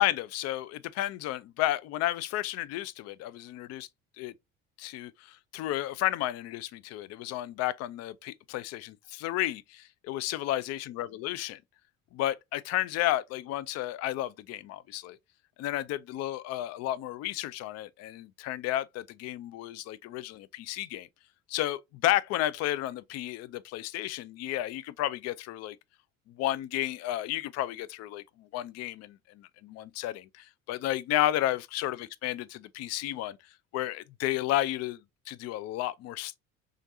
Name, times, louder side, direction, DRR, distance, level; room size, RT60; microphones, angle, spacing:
voice 1, 0.0-3.9 4.2-4.3 4.8-11.6 12.1-15.2 15.6-21.1 21.5-25.8 26.3-32.4 32.7-33.4 33.7-36.4, left 14 dB, 40° left, 0.4 m, -32 dB
3.7 x 3.2 x 2.6 m
hypercardioid pair, 60°, 40 cm